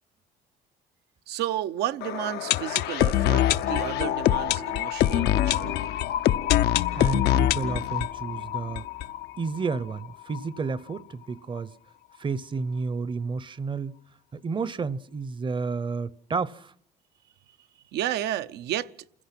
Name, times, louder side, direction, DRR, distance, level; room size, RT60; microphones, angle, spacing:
voice 1, 1.3-5.9 17.9-18.9, right 12 dB, 80° right, 0.8 m, -32 dB
sound 1, 2.0-9.8 10.0-10.1 10.3-10.4 11.0-11.1, left 12 dB, 75° left, 0.7 m, -25 dB
voice 2, 6.9-8.9 9.4-11.7 12.2-13.9 14.3-16.7, right 4 dB, 30° right, 0.7 m, -31 dB
28.0 x 16.0 x 5.9 m
cardioid pair, 110°, 17 cm